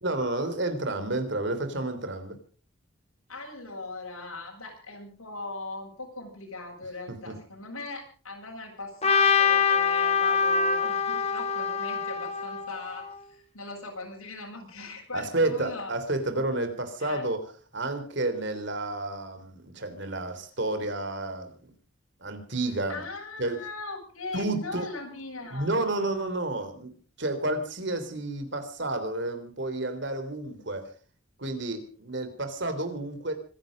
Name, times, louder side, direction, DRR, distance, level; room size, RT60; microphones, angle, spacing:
voice 1, 0.0-2.4 7.3-7.4 15.1-17.4 17.7-21.7 22.2-23.0 23.4-23.6 24.3-24.9 25.5-30.9 31.4-33.3, right 2 dB, 55° right, 9 dB, 3.6 m, -30 dB
voice 2, 3.3-15.9 17.0-17.2 22.9-25.8, left 3 dB, 85° left, -1 dB, 7.9 m, -39 dB
Trumpet, 9.0-13.2, left 6 dB, 30° left, 2.6 m, -24 dB
25.5 x 11.0 x 5.3 m, 0.41 s
head